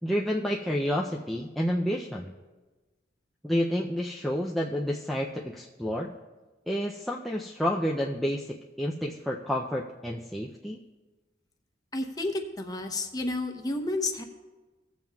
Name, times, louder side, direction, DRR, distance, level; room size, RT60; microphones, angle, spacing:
voice 1, 0.0-2.3 3.4-6.1 6.7-10.8, equal, ahead, -3 dB, 0.4 m, -29 dB
voice 2, 11.9-14.2, left 2 dB, 20° left, 4 dB, 0.8 m, -31 dB
17.0 x 7.4 x 2.3 m, 1.2 s
head